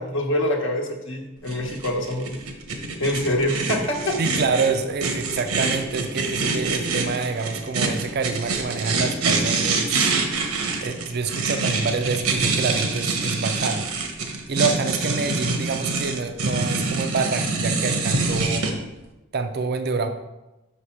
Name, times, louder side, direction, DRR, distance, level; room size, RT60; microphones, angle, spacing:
voice 1, 0.0-2.4 3.0-4.2, left 1 dB, 55° left, 0 dB, 1.0 m, -25 dB
sound 1, 1.5-18.7, right 3 dB, 85° right, 1.0 m, -25 dB
voice 2, 4.2-10.2 10.8-13.9 14.2-18.7 19.3-20.1, right 4 dB, 45° right, 7 dB, 0.4 m, -27 dB
5.6 x 4.9 x 5.7 m, 1.0 s
head